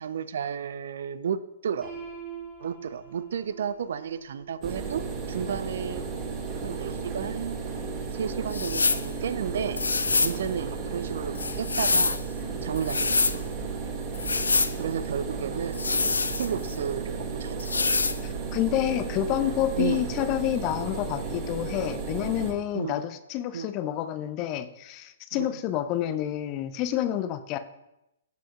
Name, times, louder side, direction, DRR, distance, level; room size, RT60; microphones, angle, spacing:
voice 1, 0.0-1.9 2.6-6.0 6.6-7.6 8.1-9.8 10.2-12.2 12.6-13.4 14.8-17.7 19.8-20.1 22.7-23.0 23.5-23.7 25.3-25.5, right 7 dB, 55° right, 15 dB, 0.4 m, -32 dB
Piano, 1.8-7.7, right 6 dB, 5° left, 3.6 m, -46 dB
sound 1, 4.6-22.5, right 5 dB, 30° right, 1.4 m, -34 dB
sound 2, 8.5-9.1 9.8-10.4 11.4-12.2 12.8-13.4 14.1-14.7 15.7-16.8 17.6-18.2, left 4 dB, 75° left, 0.5 m, -25 dB
voice 2, 18.2-27.6, left 12 dB, 30° left, 11 dB, 0.6 m, -28 dB
15.5 x 7.6 x 2.5 m, 0.89 s
figure-of-eight pair, 115°, 0 cm